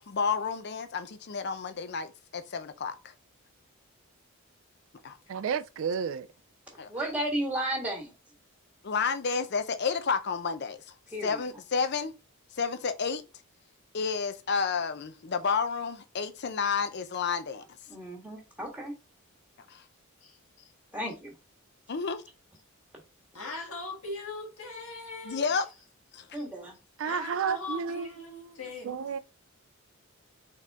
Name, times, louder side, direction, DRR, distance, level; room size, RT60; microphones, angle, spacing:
voice 1, 0.0-2.9 5.0-5.2 6.8-6.9 8.8-10.8 11.2-12.1 12.6-13.2 13.9-17.6 19.7-19.8 21.9-22.2 25.2-25.7 26.1-26.3, left 5 dB, 50° left, 0.6 m, -30 dB
voice 2, 5.3-6.3 27.0-28.1 28.3-28.5 28.8-29.2, right 6 dB, 60° right, 0.3 m, -31 dB
voice 3, 6.9-8.1 11.1-11.4 17.9-18.9 20.9-21.3 26.3-26.8, right 1 dB, 5° right, 1.6 m, -33 dB
voice 4, 23.3-25.6 26.4-26.5 27.0-29.0, left 2 dB, 75° left, 1.8 m, -40 dB
4.1 x 3.7 x 3.4 m
head